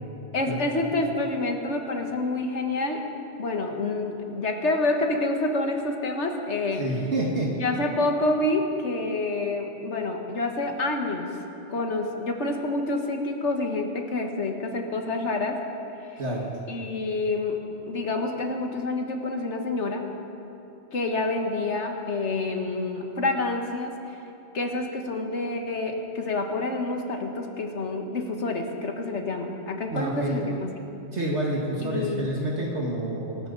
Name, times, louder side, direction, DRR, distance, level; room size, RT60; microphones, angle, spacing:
voice 1, 0.3-3.0 3.4-6.8 7.6-11.3 11.7-15.6 16.7-17.6 17.9-20.0 20.9-23.9 24.5-30.7 31.8-32.3, left 2 dB, 80° left, 3 dB, 1.8 m, -28 dB
voice 2, 6.8-7.5 16.2-16.5 29.9-30.4 31.1-33.5, right 1 dB, 70° right, -3 dB, 2.1 m, -28 dB
25.0 x 13.5 x 4.1 m, 2.8 s
omnidirectional pair, 1.2 m